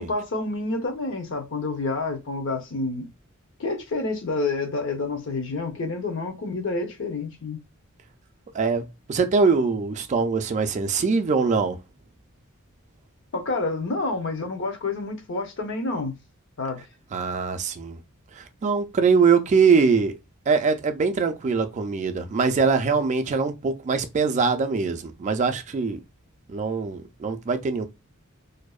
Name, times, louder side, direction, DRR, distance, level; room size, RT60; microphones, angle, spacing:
voice 1, 0.0-3.1 3.6-7.6 13.3-16.1 16.6-16.8, left 3 dB, 65° left, 0.7 m, -28 dB
voice 2, 8.5-11.8 17.1-18.0 18.3-20.2 20.5-26.0 26.5-27.9, right 5 dB, 35° right, 0.3 m, -22 dB
2.6 x 2.0 x 2.3 m
head